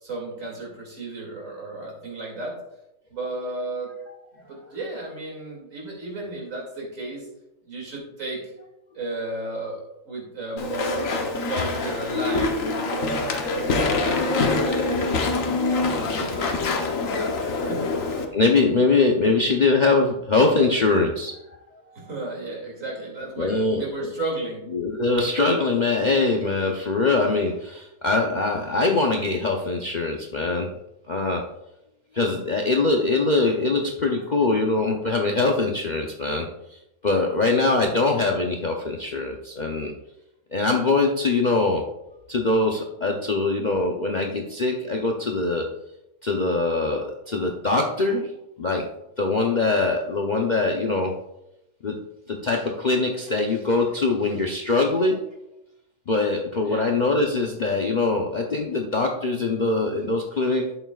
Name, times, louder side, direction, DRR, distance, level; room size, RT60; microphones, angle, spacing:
voice 1, 0.0-2.5 3.1-3.9 4.5-7.3 7.7-8.4 8.9-9.8 10.1-16.6 17.1-17.9 21.9-24.7 56.6-56.9, right 2 dB, 65° right, -2 dB, 2.9 m, -34 dB
Walk footsteps / Chatter / Squeak, 10.6-18.2, left 3 dB, 65° left, 1.4 m, -25 dB
voice 2, 16.0-16.3 18.3-21.4 23.4-23.9 24.7-30.7 31.1-31.4 32.1-39.9 40.5-41.8 42.3-45.7 46.2-48.3 48.6-48.9 49.2-51.1 51.8-52.0 52.3-55.2 56.1-60.7, left 3 dB, 45° left, 1 dB, 0.6 m, -23 dB
11.0 x 8.0 x 2.4 m, 0.87 s
omnidirectional pair, 1.5 m